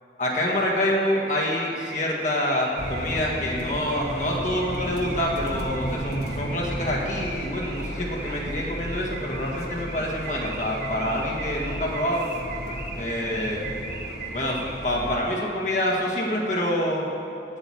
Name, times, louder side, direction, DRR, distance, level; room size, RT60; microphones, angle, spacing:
voice 1, 0.2-12.3 13.0-13.7 14.3-17.0, left 1 dB, 40° left, -3 dB, 1.7 m, -26 dB
Car / Alarm, 0.9-15.0, right 4 dB, 50° right, 1.2 m, -40 dB
sound 1, 2.8-15.2, equal, 65° left, 1.3 m, -34 dB
8.8 x 8.0 x 8.7 m, 2.9 s
head